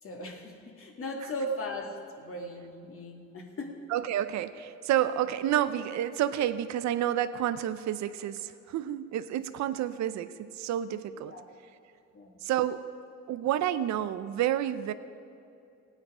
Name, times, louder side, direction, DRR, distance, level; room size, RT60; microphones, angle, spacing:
voice 1, 0.0-3.7 11.3-11.4 12.1-12.3, equal, 45° left, 1 dB, 2.2 m, -38 dB
voice 2, 3.9-11.3 12.4-12.8 13.3-14.9, right 11 dB, 65° right, 12 dB, 0.6 m, -29 dB
17.0 x 8.9 x 4.9 m, 2.5 s
cardioid pair, 90°, 30 cm